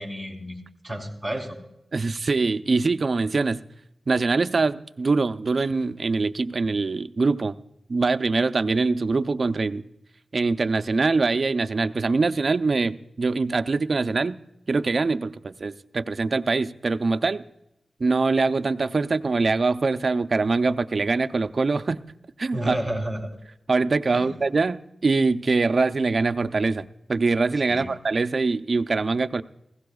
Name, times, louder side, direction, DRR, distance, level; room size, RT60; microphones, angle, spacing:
voice 1, 0.0-1.6 22.5-23.3 24.1-24.5 27.7-27.9, right 1 dB, 5° left, 0 dB, 3.6 m, -31 dB
voice 2, 1.9-3.6 4.1-7.6 7.9-9.8 10.3-14.4 14.7-17.4 18.0-22.0 22.4-22.8 23.7-24.8 25.0-29.4, right 3 dB, 50° right, 10 dB, 0.5 m, -23 dB
20.0 x 16.0 x 2.3 m, 0.85 s
wide cardioid pair, 95°, 0 cm